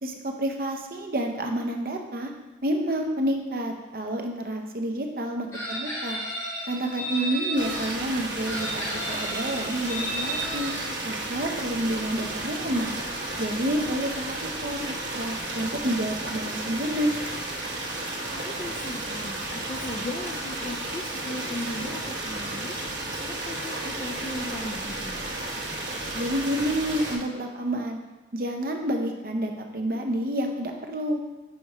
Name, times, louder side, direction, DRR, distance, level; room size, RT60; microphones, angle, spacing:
voice 1, 0.0-2.3 2.6-6.2 6.7-10.7 11.0-12.9 13.4-14.4 14.6-17.1 26.1-28.0 28.3-31.2, right 1 dB, 50° right, 3 dB, 0.7 m, -29 dB
Chicken rooster, 5.5-7.9 8.4-10.9, right 1 dB, 15° left, 1.1 m, -33 dB
voice 2, 6.8-7.2 18.3-22.8 23.2-25.3, left 1 dB, 35° left, 0 dB, 0.4 m, -37 dB
sound 1, 7.6-27.1, right 2 dB, 80° right, 1.2 m, -33 dB
5.7 x 4.2 x 4.8 m, 1.1 s
head